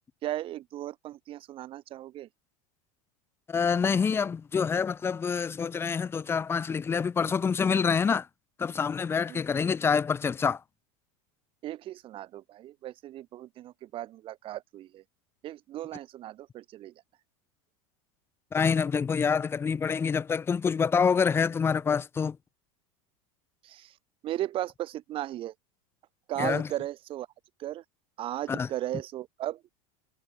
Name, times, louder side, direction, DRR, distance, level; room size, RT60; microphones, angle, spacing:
voice 1, 0.2-2.3 9.3-9.4 11.6-15.0 15.4-16.9 23.6-23.9 24.2-25.5 26.3-27.3 27.6-27.8 28.2-29.6, right 14 dB, 30° right, 4.4 m, -36 dB
voice 2, 3.5-8.3 8.6-10.6 18.5-22.4 26.4-26.7 28.5-28.7, left 6 dB, 15° left, 1.5 m, -26 dB
supercardioid pair, 160°, 17 cm